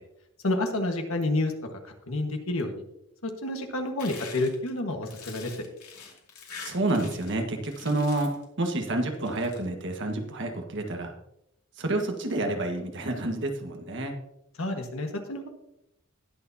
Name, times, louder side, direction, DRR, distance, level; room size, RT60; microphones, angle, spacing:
voice 1, 0.4-2.8 3.2-5.5 14.6-15.5, left 2 dB, 65° left, 4 dB, 1.5 m, -29 dB
sound 1, 4.0-7.4 7.6-8.4 9.1-9.6, left 5 dB, 85° left, 2.6 m, -44 dB
voice 2, 6.6-11.1 11.8-14.1, right 2 dB, 55° right, 3 dB, 1.5 m, -29 dB
19.5 x 6.7 x 2.8 m, 0.82 s
head